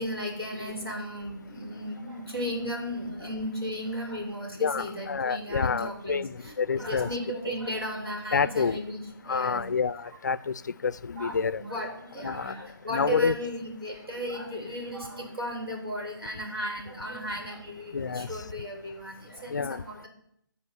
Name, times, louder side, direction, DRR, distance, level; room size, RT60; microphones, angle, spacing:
voice 1, 0.0-9.6 11.2-20.1, equal, 90° right, 0 dB, 3.3 m, -35 dB
voice 2, 4.6-7.1 8.3-8.8 9.3-11.6 12.2-12.5 12.9-13.4 17.9-18.3 19.5-19.8, left 5 dB, 50° left, 18 dB, 0.4 m, -28 dB
10.5 x 4.2 x 7.3 m, 0.71 s
figure-of-eight pair, 145°, 12 cm